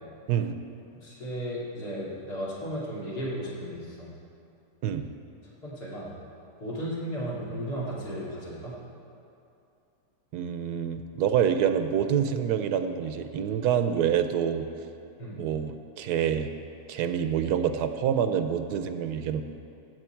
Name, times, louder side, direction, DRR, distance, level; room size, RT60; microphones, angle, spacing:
voice 1, 1.0-4.1 5.6-6.2 6.6-8.7 15.2-15.4, equal, 70° left, -6 dB, 3.2 m, -35 dB
voice 2, 10.3-14.7 15.4-16.5 16.9-19.4, right 8 dB, 75° right, 8 dB, 1.1 m, -26 dB
15.5 x 8.0 x 4.5 m, 2.6 s
omnidirectional pair, 1.8 m